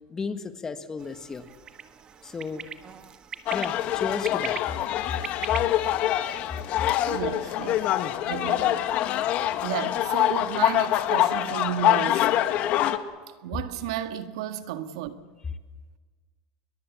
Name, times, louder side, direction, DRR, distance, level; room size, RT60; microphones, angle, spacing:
voice 1, 0.1-1.4 2.2-2.7 3.5-4.6, left 4 dB, 20° left, 1.7 m, -34 dB
sound 1, 1.0-7.9, right 7 dB, 30° right, 1.4 m, -42 dB
sound 2, 3.5-13.0, left 12 dB, 50° left, 1.5 m, -25 dB
voice 2, 7.1-7.9 8.2-8.9 9.6-12.3 13.4-15.1, right 10 dB, 80° right, 1.8 m, -33 dB
27.5 x 22.0 x 7.4 m
supercardioid pair, 135°, 3 cm